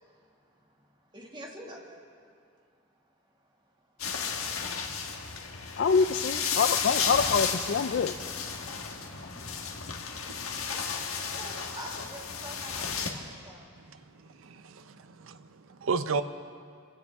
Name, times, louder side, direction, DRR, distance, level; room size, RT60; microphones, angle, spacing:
voice 1, 1.1-2.0 10.5-10.9 11.2-13.7, right 1 dB, 20° right, -1 dB, 2.0 m, -46 dB
sound 1, 4.0-13.1, left 6 dB, 85° left, 1.4 m, -33 dB
voice 2, 5.8-8.1, left 5 dB, 55° left, 9 dB, 0.4 m, -25 dB
voice 3, 14.4-16.2, right 4 dB, 65° right, 10 dB, 0.6 m, -33 dB
25.0 x 16.0 x 3.5 m, 2.3 s
head